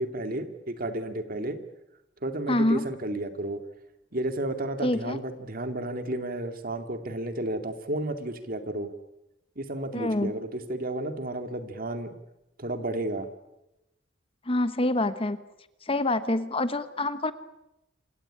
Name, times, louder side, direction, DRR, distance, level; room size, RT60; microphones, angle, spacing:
voice 1, 0.0-1.6 2.2-3.6 4.1-8.9 9.6-12.1 12.6-13.3, right 1 dB, 50° right, 8 dB, 2.4 m, -32 dB
voice 2, 2.5-2.9 4.8-5.2 9.9-10.4 14.5-15.4 15.9-17.3, left 2 dB, 30° left, 12 dB, 1.2 m, -26 dB
27.5 x 17.0 x 10.0 m, 0.93 s
head